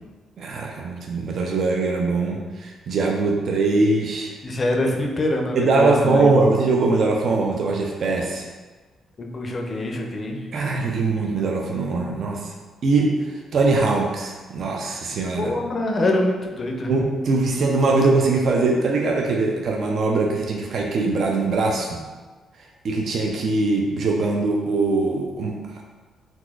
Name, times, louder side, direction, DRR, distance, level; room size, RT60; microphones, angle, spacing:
voice 1, 0.4-4.3 5.6-8.5 10.5-12.5 12.8-15.5 16.9-22.0 22.8-25.6, right 3 dB, 60° right, 0 dB, 0.4 m, -22 dB
voice 2, 4.4-6.3 9.2-10.4 15.3-16.9, left 1 dB, 35° left, 1 dB, 0.5 m, -24 dB
4.0 x 2.3 x 2.3 m, 1.3 s
cardioid pair, 90°, 0 cm